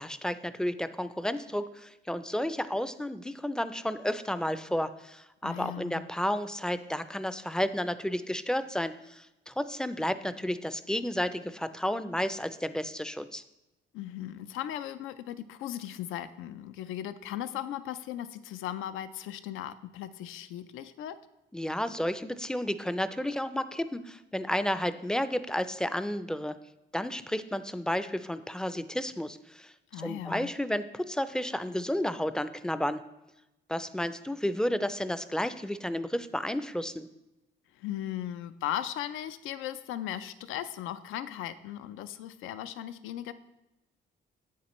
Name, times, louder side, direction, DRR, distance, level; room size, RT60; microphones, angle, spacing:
voice 1, 0.0-13.4 21.5-26.5 26.9-33.0 33.7-37.1, equal, 5° left, 12 dB, 0.3 m, -32 dB
voice 2, 5.4-6.0 13.9-21.2 29.9-30.5 37.7-43.3, left 11 dB, 90° left, 13 dB, 0.4 m, -37 dB
8.3 x 7.3 x 3.0 m, 0.95 s
cardioid pair, 90°, 20 cm